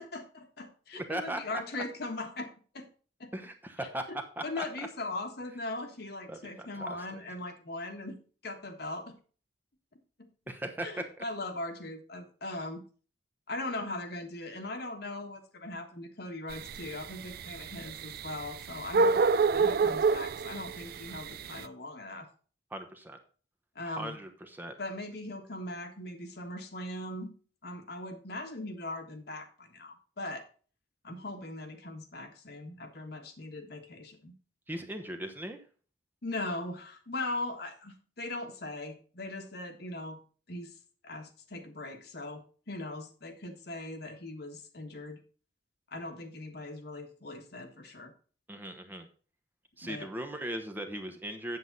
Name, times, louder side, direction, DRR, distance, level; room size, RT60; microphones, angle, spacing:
voice 1, 0.0-2.9 3.2-3.3 3.8-8.1 8.4-9.1 10.8-12.8 13.5-19.2 19.5-22.3 23.7-24.2 24.8-27.3 27.6-30.4 31.0-34.3 36.2-40.2 40.5-40.8 41.0-45.2 45.9-48.1 49.8-50.1, left 2 dB, 60° left, 5 dB, 1.5 m, -40 dB
voice 2, 0.9-1.4 3.3-4.0 4.4-4.6 6.3-7.0 10.5-10.9 22.7-23.2 23.8-24.7 34.7-35.6 48.5-49.1 49.8-51.6, right 1 dB, 10° right, 5 dB, 0.9 m, -38 dB
sound 1, 16.5-21.6, right 4 dB, 55° right, 0.4 m, -27 dB
7.9 x 7.8 x 4.0 m, 0.39 s
head